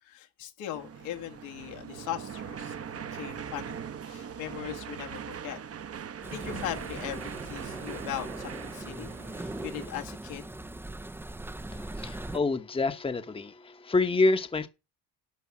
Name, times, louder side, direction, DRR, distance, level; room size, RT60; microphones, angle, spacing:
voice 1, 0.0-3.8 4.1-5.6 6.3-10.5, left 11 dB, 85° left, 2.2 m, -39 dB
sound 1, 0.7-9.9, right 8 dB, 30° right, 0.8 m, -41 dB
sound 2, 6.2-12.4, right 1 dB, 5° right, 0.5 m, -40 dB
voice 2, 11.7-14.7, left 3 dB, 10° left, 0.9 m, -27 dB
11.5 x 5.5 x 7.3 m
supercardioid pair, 80°, 45 cm